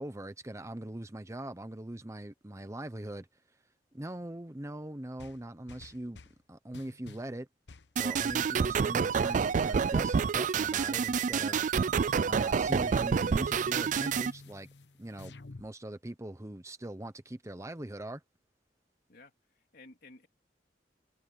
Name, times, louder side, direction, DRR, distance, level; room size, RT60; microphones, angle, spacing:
voice 1, 0.0-3.3 3.9-6.2 6.5-7.5 8.0-11.6 12.3-14.7 15.0-15.3 15.6-18.2, right 1 dB, 15° right, 0.9 m, -41 dB
sound 1, 5.2-6.4 6.7-7.3 7.7-8.9 9.2-9.8 10.2-11.4 11.7-12.9 13.2-15.7, left 3 dB, 75° left, 0.9 m, -50 dB
sound 2, 8.0-14.3, right 6 dB, 45° right, 0.4 m, -28 dB
voice 2, 19.1-20.3, left 3 dB, 60° left, 3.3 m, -55 dB
head